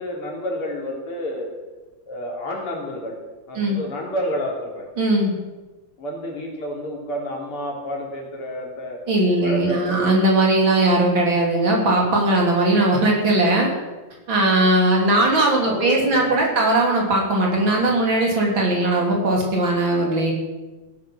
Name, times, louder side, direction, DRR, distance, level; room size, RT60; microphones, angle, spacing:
voice 1, 0.0-1.5 2.1-3.2 3.5-4.9 6.0-9.0 9.4-10.0 15.0-16.7, equal, 90° left, -1 dB, 4.2 m, -30 dB
voice 2, 5.0-5.3 9.1-13.7 14.3-20.3, right 2 dB, 60° right, -1 dB, 4.0 m, -19 dB
16.5 x 9.6 x 6.3 m, 1.2 s
omnidirectional pair, 2.4 m